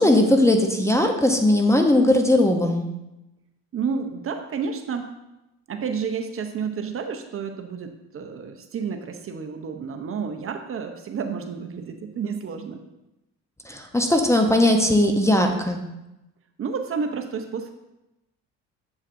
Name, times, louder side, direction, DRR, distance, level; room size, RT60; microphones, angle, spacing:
voice 1, 0.0-2.9 13.7-15.8, left 1 dB, 10° left, 4 dB, 0.8 m, -19 dB
voice 2, 3.7-5.1 5.7-12.8 16.6-17.7, right 6 dB, 40° right, 5 dB, 0.8 m, -30 dB
7.5 x 7.2 x 2.6 m, 0.94 s
supercardioid pair, 80°, 35 cm